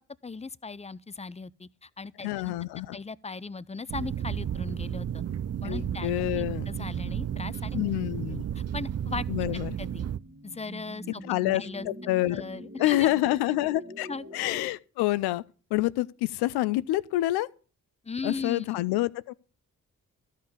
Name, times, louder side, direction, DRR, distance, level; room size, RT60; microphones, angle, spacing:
voice 1, 0.2-2.5 2.9-5.2 5.6-7.8 8.2-9.3 9.5-10.1 10.4-11.2 11.5-11.9 12.3-13.1 14.1-14.2 18.0-18.7, left 4 dB, 20° left, 0.5 m, -38 dB
voice 2, 2.2-3.0 5.7-6.7 7.7-8.5 9.3-9.8 11.2-12.4 12.8-14.1 14.3-15.4 15.7-17.5 18.2-19.3, left 16 dB, 80° left, 0.6 m, -27 dB
sound 1, 3.9-10.2, right 9 dB, 40° right, 0.6 m, -33 dB
sound 2, 9.2-14.7, equal, 25° right, 1.7 m, -45 dB
13.0 x 5.7 x 6.7 m
hypercardioid pair, 45°, 38 cm